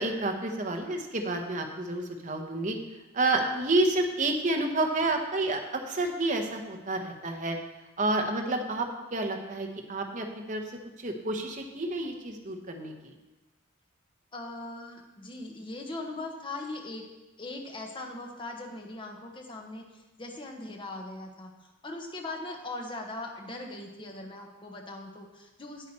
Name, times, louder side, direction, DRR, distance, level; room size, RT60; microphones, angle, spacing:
voice 1, 0.0-2.8 3.1-7.6 8.0-10.6 11.0-13.1, right 2 dB, 35° right, 3 dB, 1.0 m, -29 dB
voice 2, 14.3-17.0 17.4-25.9, left 2 dB, 25° left, 2 dB, 1.0 m, -40 dB
9.0 x 8.2 x 4.3 m, 1.1 s
head